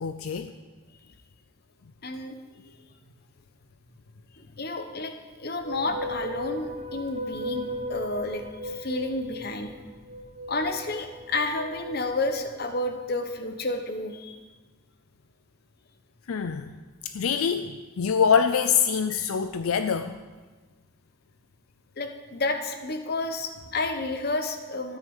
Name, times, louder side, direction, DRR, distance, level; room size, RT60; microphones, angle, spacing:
voice 1, 0.0-0.5 16.3-16.7 17.0-20.2, left 6 dB, 75° left, 9 dB, 0.5 m, -25 dB
voice 2, 2.0-2.4 2.6-2.7 4.3-5.1 5.4-9.7 10.5-14.4 22.0-25.0, left 2 dB, 45° left, 7 dB, 1.0 m, -31 dB
sound 1, 5.6-13.6, equal, 35° right, 2.3 m, -37 dB
13.0 x 9.5 x 5.5 m, 1.3 s
head